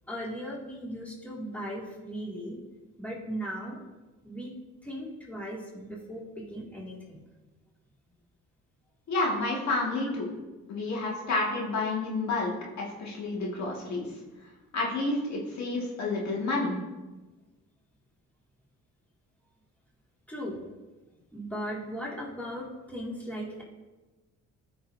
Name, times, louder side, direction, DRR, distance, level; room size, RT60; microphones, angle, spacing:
voice 1, 0.1-2.6 3.0-3.8 4.2-4.5 4.8-7.2 20.3-20.6 21.3-23.6, equal, 5° left, -4 dB, 2.1 m, -37 dB
voice 2, 9.1-10.3 10.7-14.1 14.7-16.8, left 2 dB, 65° left, -2 dB, 1.9 m, -30 dB
12.5 x 5.4 x 2.7 m, 1.2 s
cardioid pair, 90°, 30 cm